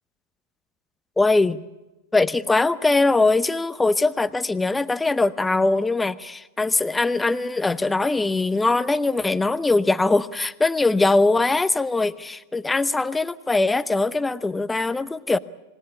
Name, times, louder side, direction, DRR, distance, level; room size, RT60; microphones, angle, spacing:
voice 1, 1.2-1.6 2.1-15.4, left 3 dB, 10° left, 15 dB, 0.8 m, -21 dB
27.5 x 19.5 x 8.6 m, 1.1 s
figure-of-eight pair, 90°, 0 cm